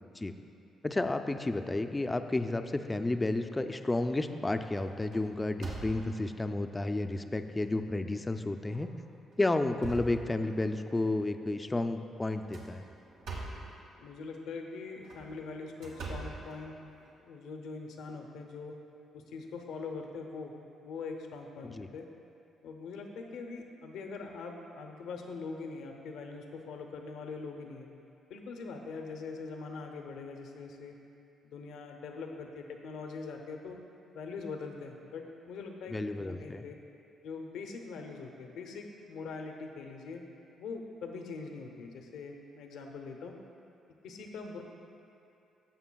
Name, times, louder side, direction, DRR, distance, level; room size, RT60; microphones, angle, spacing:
voice 1, 0.8-8.9 9.4-12.9 21.7-21.9 35.9-36.6, left 2 dB, 15° left, 8 dB, 0.4 m, -31 dB
sound 1, 3.4-3.7 4.2-4.4 4.8-6.3 7.0-7.1 7.6-7.7 8.6-8.9 9.3-10.8 12.3-13.8 14.9-17.1, right 3 dB, 90° right, 1.4 m, -44 dB
voice 2, 14.0-16.7 17.2-18.7 19.1-20.5 20.8-22.1 22.6-27.9 28.3-30.9 31.4-33.8 34.1-36.7 37.2-40.2 40.6-43.4 44.0-44.6, left 4 dB, 85° left, 3 dB, 0.7 m, -42 dB
14.5 x 5.7 x 2.3 m, 2.7 s
cardioid pair, 90°, 0 cm